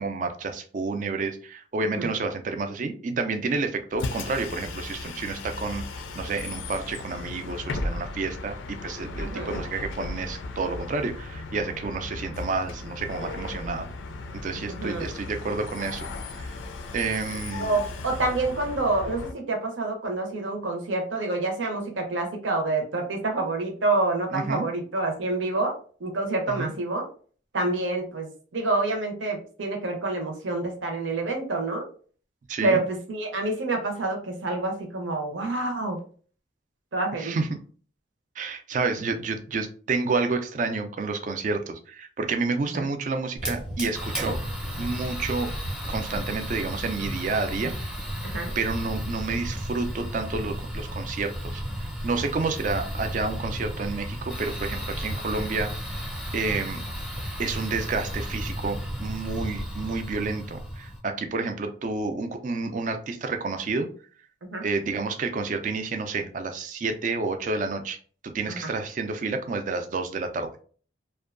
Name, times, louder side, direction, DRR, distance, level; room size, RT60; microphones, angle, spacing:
voice 1, 0.0-5.8 6.2-13.9 14.4-16.6 16.9-17.8 24.3-24.7 26.5-26.7 32.5-32.8 37.2-37.6 38.4-44.4 44.8-45.5 45.9-47.7 48.6-51.6 52.0-55.7 56.3-56.8 57.4-63.9 64.6-68.0 68.2-70.5, right 4 dB, 40° right, 7 dB, 0.3 m, -30 dB
Bus, 3.9-19.3, left 3 dB, 75° left, 0.4 m, -36 dB
voice 2, 9.2-9.6 14.7-15.1 17.6-27.1 27.5-31.8 32.6-36.0 36.9-37.4 38.8-38.9 42.7-42.8 48.2-48.5 64.5-64.6 68.5-68.6, right 2 dB, 75° right, 3 dB, 0.7 m, -27 dB
Fire, 43.4-61.0, equal, 5° right, 0.7 m, -33 dB
2.6 x 2.2 x 2.4 m, 0.43 s
head